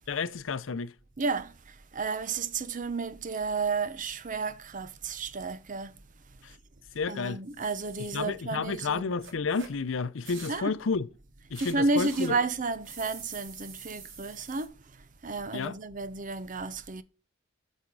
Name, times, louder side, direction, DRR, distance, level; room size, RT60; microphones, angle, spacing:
voice 1, 0.1-0.9 6.4-6.5 6.9-7.4 8.0-11.1 11.5-12.3 15.5-15.8, left 4 dB, 90° left, 0.6 m, -31 dB
voice 2, 1.2-1.5 1.9-5.9 7.1-9.1 10.5-10.7 11.6-14.7 15.2-17.0, right 3 dB, 45° right, 0.7 m, -32 dB
sound 1, 7.5-8.2 9.2-9.7 10.2-10.6 11.5-12.3 12.8-14.7, right 6 dB, 75° right, 2.4 m, -46 dB
8.5 x 6.4 x 4.7 m
head